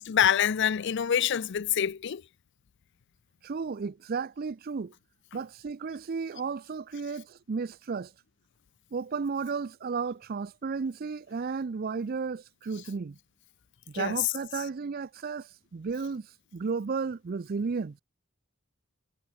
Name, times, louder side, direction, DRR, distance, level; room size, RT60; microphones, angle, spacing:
voice 1, 0.0-2.2 13.9-14.2, left 9 dB, 55° left, 0.5 m, -26 dB
voice 2, 3.4-4.9 5.3-8.1 8.9-13.2 13.9-16.3 16.5-18.0, right 5 dB, 45° right, 0.4 m, -33 dB
head